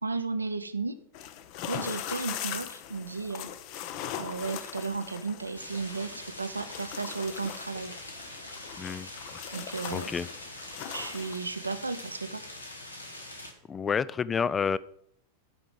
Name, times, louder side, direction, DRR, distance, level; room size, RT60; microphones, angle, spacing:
voice 1, 0.0-1.0 1.7-3.5 4.2-7.9 9.5-10.1 10.9-12.4, right 4 dB, 80° right, 11 dB, 0.6 m, -34 dB
sound 1, 1.1-11.4, left 10 dB, 45° left, 0.7 m, -40 dB
sound 2, 5.5-13.5, left 1 dB, 85° left, 1.3 m, -44 dB
voice 2, 8.8-9.1 9.9-10.3 13.7-14.8, left 6 dB, 20° left, 19 dB, 0.3 m, -29 dB
7.9 x 4.9 x 7.1 m, 0.69 s
figure-of-eight pair, 90°, 0 cm